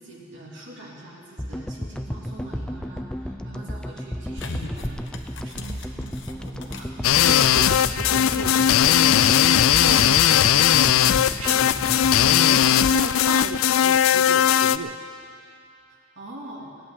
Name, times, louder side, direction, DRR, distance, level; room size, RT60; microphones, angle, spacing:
voice 1, 0.0-5.0 5.4-6.1 6.4-7.1 16.1-16.7, right 1 dB, 60° right, -4 dB, 3.2 m, -43 dB
sound 1, 1.4-13.7, equal, 5° left, 0.5 m, -33 dB
sound 2, 4.4-8.1 8.3-9.2, left 2 dB, 60° left, 1.1 m, -38 dB
sound 3, 7.0-14.8, left 10 dB, 85° left, 0.4 m, -18 dB
voice 2, 7.2-9.3 9.8-10.2 11.4-11.8 12.2-15.0, right 5 dB, 90° right, 12 dB, 0.6 m, -35 dB
18.0 x 7.7 x 10.0 m, 2.6 s
head